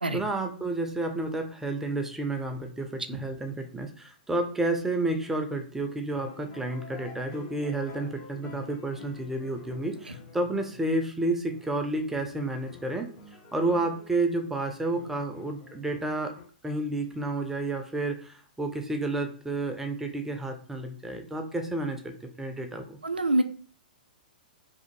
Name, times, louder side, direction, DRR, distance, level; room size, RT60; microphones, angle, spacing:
voice 1, 0.1-13.1 13.5-16.3 16.6-23.0, right 2 dB, 5° right, 5 dB, 0.3 m, -30 dB
sound 1, 6.1-11.2 11.5-14.2 14.9-16.4, left 4 dB, 30° left, 0.6 m, -48 dB
voice 2, 23.0-23.4, right 1 dB, 85° right, 9 dB, 0.3 m, -24 dB
2.6 x 2.0 x 3.0 m, 0.42 s
figure-of-eight pair, 110°, 5 cm